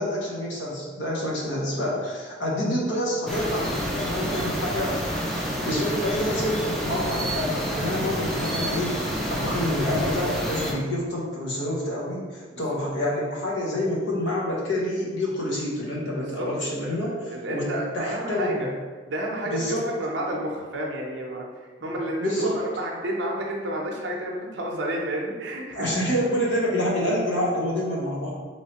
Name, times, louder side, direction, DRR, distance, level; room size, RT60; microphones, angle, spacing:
voice 1, 0.0-5.0 5.7-18.7 19.5-19.9 21.8-21.9 22.2-22.6 25.7-28.3, left 1 dB, 70° left, -4 dB, 0.9 m, -27 dB
sound 1, 3.3-10.7, equal, ahead, 0.4 m, -28 dB
voice 2, 16.2-16.5 16.7-18.7 19.1-21.4 21.8-25.9, right 1 dB, 70° right, -2 dB, 0.6 m, -31 dB
3.1 x 3.0 x 2.9 m, 1.4 s
head